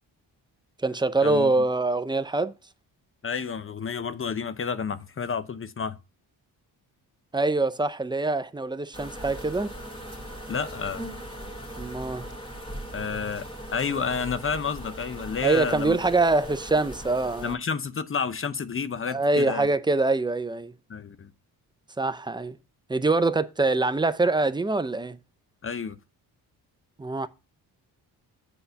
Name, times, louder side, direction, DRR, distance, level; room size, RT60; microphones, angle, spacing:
voice 1, 0.8-2.5 7.3-9.7 11.8-12.3 15.4-17.6 19.1-20.7 22.0-22.6 22.9-25.2 27.0-27.3, right 3 dB, 10° right, 0.5 m, -24 dB
voice 2, 3.2-6.0 10.5-11.1 12.9-16.0 17.4-19.7 20.9-21.3 25.6-26.0, left 6 dB, 30° left, 0.7 m, -30 dB
sound 1, 8.9-17.5, equal, 15° left, 2.2 m, -39 dB
8.0 x 4.1 x 5.6 m
cardioid pair, 95°, 40 cm